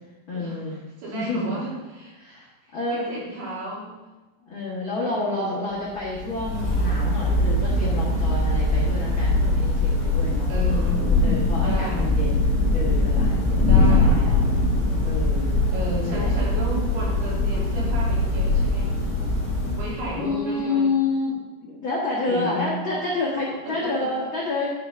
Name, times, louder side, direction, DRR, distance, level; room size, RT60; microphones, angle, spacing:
voice 1, 0.3-0.8 1.1-1.5 2.2-2.5 2.7-3.0 4.4-10.5 11.2-14.6 15.0-15.5 16.1-16.3 20.2-21.4 21.6-24.7, left 3 dB, 80° left, -6 dB, 1.1 m, -29 dB
voice 2, 1.0-2.4 2.6-3.9 5.1-5.6 10.5-12.2 13.6-14.2 15.7-18.9 19.8-20.9 22.2-22.8 23.6-24.1, equal, 70° right, -6 dB, 4.9 m, -33 dB
Thunder / Rain, 6.0-20.4, left 2 dB, 15° left, 2.6 m, -22 dB
8.9 x 5.8 x 5.7 m, 1.1 s
omnidirectional pair, 4.9 m